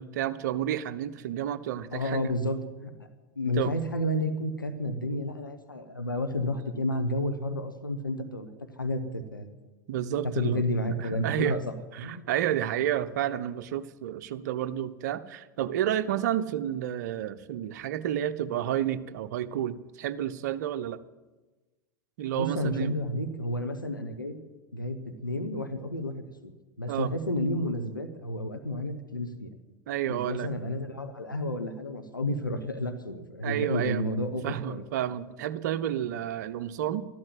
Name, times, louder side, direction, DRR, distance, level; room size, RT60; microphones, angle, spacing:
voice 1, 0.0-2.3 3.6-3.7 9.9-10.6 11.0-11.6 11.9-21.0 22.2-22.9 26.9-27.1 29.9-30.5 33.4-34.0 34.4-37.0, right 11 dB, 60° right, 13 dB, 0.8 m, -30 dB
voice 2, 1.9-2.9 3.4-8.5 8.8-9.5 10.2-11.6 12.0-12.3 22.3-24.4 24.7-26.1 26.4-26.5 26.8-29.5 30.1-34.8, left 1 dB, 85° left, 7 dB, 1.1 m, -31 dB
13.5 x 12.0 x 7.9 m, 1.2 s
figure-of-eight pair, 85°, 11 cm